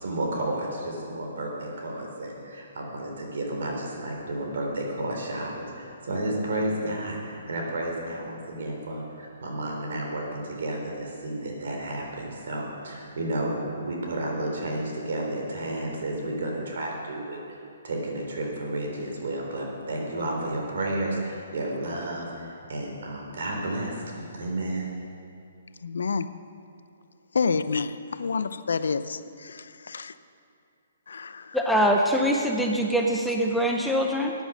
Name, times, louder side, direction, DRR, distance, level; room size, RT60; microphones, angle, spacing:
voice 1, 0.0-17.4 17.8-24.9, right 1 dB, 65° right, 0 dB, 3.6 m, -32 dB
voice 2, 25.8-26.4 27.3-27.9 28.2-30.1 31.1-31.6, left 5 dB, 85° left, 13 dB, 0.6 m, -28 dB
voice 3, 31.5-34.3, equal, ahead, 0 dB, 0.6 m, -23 dB
14.5 x 9.2 x 6.1 m, 2.5 s
hypercardioid pair, 165°, 0 cm